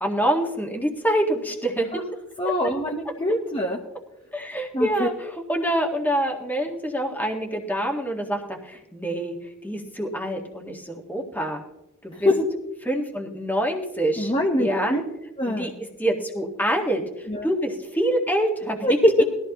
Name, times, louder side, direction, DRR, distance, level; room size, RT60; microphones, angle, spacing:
voice 1, 0.0-1.9 2.4-2.5 4.3-9.4 9.6-11.6 12.0-12.3 12.9-14.3 14.6-15.0 15.5-15.7 16.0-18.8, right 1 dB, 10° left, 1 dB, 1.7 m, -26 dB
voice 2, 2.4-3.8 4.7-5.1 12.1-12.5 14.2-15.0 15.4-15.7 17.3-17.5 18.8-19.2, equal, 25° left, 0 dB, 1.1 m, -23 dB
20.5 x 14.0 x 3.0 m, 0.95 s
head